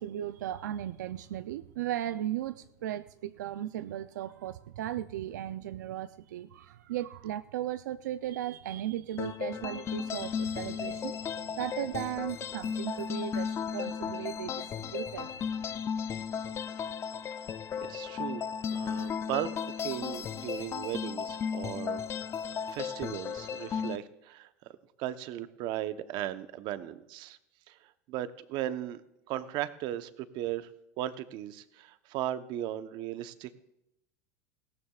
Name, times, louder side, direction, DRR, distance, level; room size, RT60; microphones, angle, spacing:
voice 1, 0.0-15.3, right 12 dB, 90° right, 11 dB, 0.5 m, -36 dB
sound 1, 9.2-24.0, left 7 dB, 30° left, 0.5 m, -35 dB
voice 2, 17.9-18.4 18.7-22.0 22.7-24.5 25.0-27.4 27.7-27.8 28.1-29.0 29.3-30.7 31.0-33.6, right 13 dB, 55° right, 11 dB, 0.9 m, -36 dB
19.5 x 16.5 x 2.4 m, 0.85 s
supercardioid pair, 110°, 9 cm